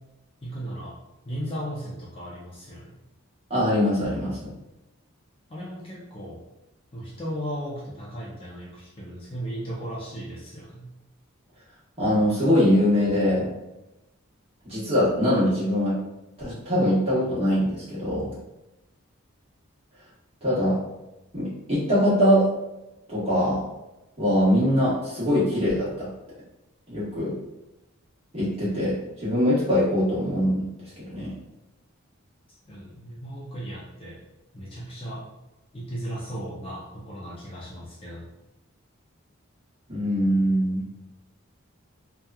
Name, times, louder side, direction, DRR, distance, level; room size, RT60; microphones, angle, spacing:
voice 1, 0.4-1.0 1.2-2.9 5.5-6.4 6.9-10.9 32.7-34.2 34.5-35.2 35.7-38.3, equal, 25° left, -6 dB, 0.5 m, -36 dB
voice 2, 3.5-4.5 12.0-13.5 14.6-16.0 16.4-18.3 20.4-20.8 21.3-22.5 23.1-23.7 24.2-26.1 26.9-27.3 28.3-30.6 31.1-31.3 39.9-40.9, equal, 30° right, -9 dB, 1.1 m, -22 dB
2.8 x 2.3 x 2.3 m, 0.96 s
head